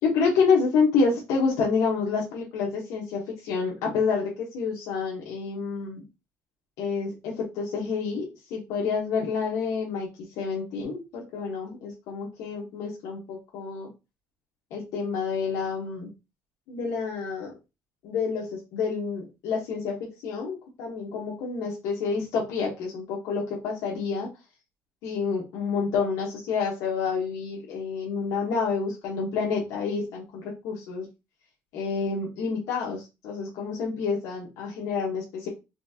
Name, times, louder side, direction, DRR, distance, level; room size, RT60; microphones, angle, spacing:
voice 1, 0.0-6.0 6.8-10.1 10.4-13.9 14.7-16.1 16.7-17.6 18.0-24.3 25.0-31.1 31.7-35.5, left 5 dB, 75° left, -3 dB, 1.3 m, -28 dB
4.3 x 3.3 x 2.8 m, 0.26 s
cardioid pair, 160°, 5 cm